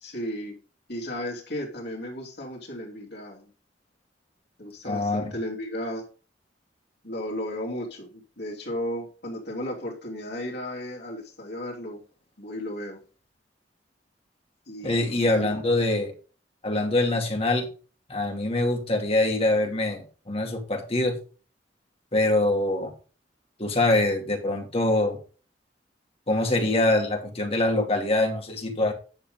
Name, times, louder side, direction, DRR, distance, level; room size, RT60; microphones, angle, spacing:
voice 1, 0.0-0.6 0.9-3.5 4.6-6.0 7.0-12.0 12.4-13.0 14.7-15.6, left 1 dB, 65° left, -1 dB, 3.2 m, -34 dB
voice 2, 4.8-5.3 14.8-16.1 16.6-17.7 18.1-21.2 22.1-22.9 23.6-25.2 26.3-28.9, left 2 dB, 35° left, 2 dB, 2.6 m, -24 dB
10.0 x 7.2 x 3.7 m, 0.36 s
head